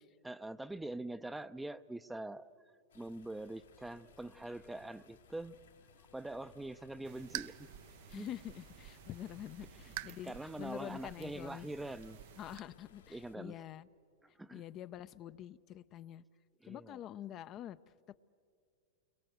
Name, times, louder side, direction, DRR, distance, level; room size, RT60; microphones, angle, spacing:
voice 1, 0.2-2.5 2.9-5.6 6.1-7.7 8.1-8.3 10.1-12.2 13.1-13.6 14.3-14.6 16.6-17.0, right 2 dB, 5° right, 13 dB, 0.6 m, -44 dB
sound 1, 2.9-13.3, left 7 dB, 90° left, 2.9 m, -62 dB
sound 2, 7.0-12.6, right 15 dB, 60° right, 0.6 m, -49 dB
voice 2, 8.1-11.7 12.4-13.9 14.5-16.2 16.6-17.8, left 11 dB, 40° left, 13 dB, 0.5 m, -46 dB
29.0 x 22.5 x 7.9 m, 2.3 s
hypercardioid pair, 110°, 0 cm